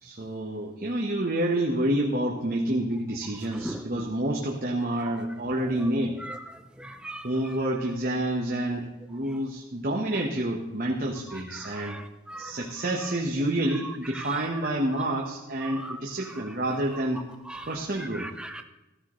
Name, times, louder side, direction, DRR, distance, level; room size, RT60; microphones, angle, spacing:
voice 1, 0.0-6.2 7.2-12.0 12.4-17.2 17.7-18.3, right 1 dB, 45° right, 1.1 m, -28 dB
voice 2, 3.6-4.0 6.2-6.4 6.8-7.3 11.5-12.6 14.1-14.3 15.7-16.0 17.5-17.7 18.0-18.6, right 1 dB, 5° right, 0.5 m, -39 dB
14.0 x 13.5 x 3.2 m
head